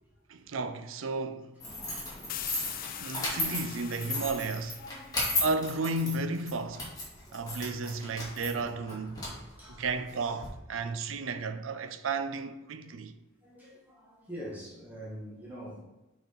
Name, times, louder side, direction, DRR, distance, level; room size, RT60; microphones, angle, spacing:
voice 1, 0.3-1.5 3.0-4.8 5.4-6.9 7.3-9.3 9.7-13.1, right 3 dB, 75° right, 0.5 m, -33 dB
sound 1, 1.6-10.5, left 1 dB, 20° left, 2.1 m, -35 dB
voice 2, 1.8-2.5 3.0-3.2 4.7-5.4 7.1-7.6 9.0-10.3 12.8-12.9 13.4-15.8, equal, 10° right, 1.3 m, -47 dB
sound 2, 2.3-5.9, left 10 dB, 45° left, 0.4 m, -42 dB
6.6 x 4.2 x 4.0 m
head